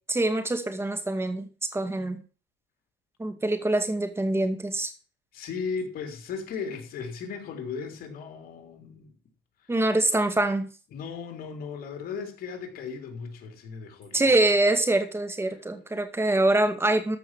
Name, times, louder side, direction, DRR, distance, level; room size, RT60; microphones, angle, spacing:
voice 1, 0.1-2.2 3.2-4.9 9.7-10.7 14.1-17.2, right 2 dB, 15° right, 2.2 m, -24 dB
voice 2, 5.3-9.1 9.6-9.8 10.9-14.2, left 5 dB, 60° left, 3.5 m, -36 dB
14.0 x 5.5 x 7.5 m
cardioid pair, 110°, 17 cm